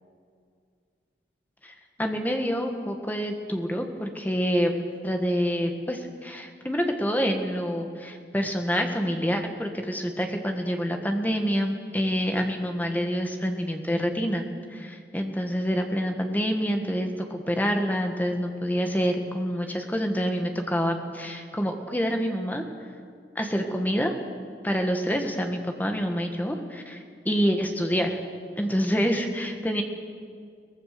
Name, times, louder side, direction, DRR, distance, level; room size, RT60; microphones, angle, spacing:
voice 1, 1.6-4.7 5.0-14.4 14.7-22.6 23.3-24.1 24.6-28.2 28.6-29.8, equal, 10° left, 4 dB, 1.7 m, -27 dB
23.0 x 18.5 x 6.8 m, 2.2 s
head